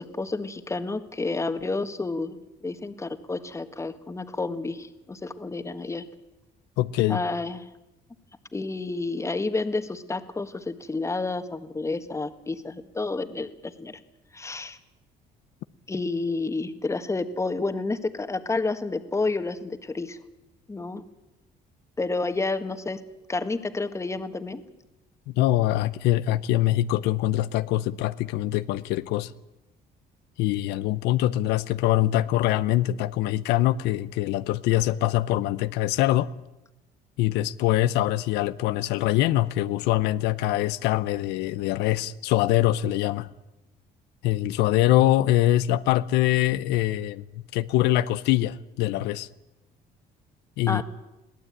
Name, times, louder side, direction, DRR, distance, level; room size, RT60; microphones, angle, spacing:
voice 1, 0.0-2.4 2.6-6.0 7.1-7.7 8.5-14.0 14.3-14.8 15.9-20.2 20.7-21.0 22.0-23.0 23.3-24.6 50.7-50.8, left 3 dB, 15° left, 1.7 m, -30 dB
voice 2, 6.8-7.2 25.4-29.3 30.4-36.3 37.2-43.3 44.2-47.2 47.5-49.3 50.6-50.8, left 14 dB, 90° left, 0.7 m, -23 dB
22.5 x 16.5 x 9.1 m
cardioid pair, 110°, 17 cm